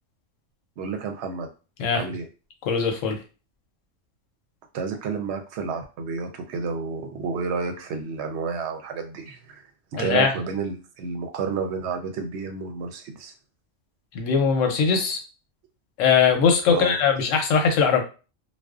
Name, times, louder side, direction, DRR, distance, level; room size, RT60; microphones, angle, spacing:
voice 1, 0.8-1.5 1.9-2.3 4.7-9.6 9.9-13.3 16.7-17.0, right 5 dB, 70° right, 5 dB, 0.8 m, -30 dB
voice 2, 2.7-3.2 10.0-10.3 14.1-15.2 16.0-18.0, left 6 dB, 85° left, 4 dB, 1.0 m, -20 dB
2.4 x 2.2 x 2.3 m, 0.34 s
omnidirectional pair, 1.3 m